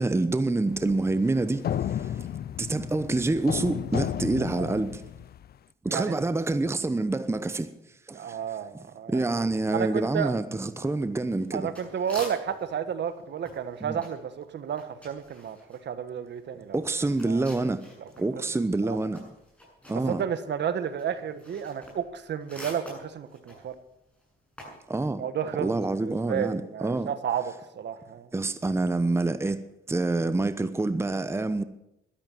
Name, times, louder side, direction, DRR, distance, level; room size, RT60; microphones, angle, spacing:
voice 1, 0.0-1.6 2.6-5.0 5.8-7.7 8.1-8.2 9.1-11.7 13.8-14.0 16.7-17.8 18.2-19.2 19.9-20.2 24.9-25.2 25.6-27.1 28.3-29.6 29.9-31.6, right 2 dB, 15° right, 0.9 m, -27 dB
sound 1, 0.7-5.5, left 10 dB, 50° left, 0.6 m, -33 dB
voice 2, 5.9-6.2 8.1-9.2 9.7-10.3 11.5-16.8 17.3-17.4 18.0-18.1 18.8-19.0 20.1-23.7 25.2-28.3, right 8 dB, 60° right, 1.4 m, -32 dB
sound 2, 10.8-12.8 13.0-18.3 18.6-24.9, equal, 5° left, 7.7 m, -47 dB
13.5 x 12.0 x 7.3 m
cardioid pair, 90°, 20 cm